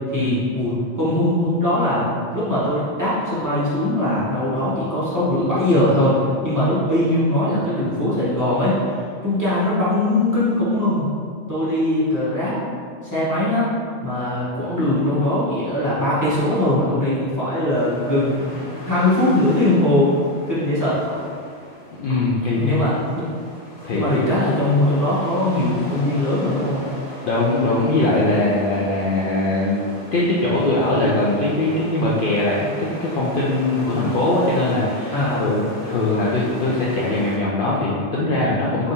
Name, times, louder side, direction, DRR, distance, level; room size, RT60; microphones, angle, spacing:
voice 1, 0.1-8.9 9.2-11.1 11.5-12.5 13.0-13.7 14.0-20.1 20.5-21.0 22.6-23.2 23.9-26.8 35.1-35.4, left 1 dB, 15° right, -11 dB, 1.1 m, -20 dB
sound 1, 17.7-37.4, equal, 35° left, 1.0 m, -38 dB
voice 2, 22.0-22.8 23.8-24.3 27.2-29.8 30.1-38.9, left 2 dB, 60° left, -6 dB, 0.6 m, -21 dB
3.5 x 2.7 x 4.1 m, 2.1 s
omnidirectional pair, 1.2 m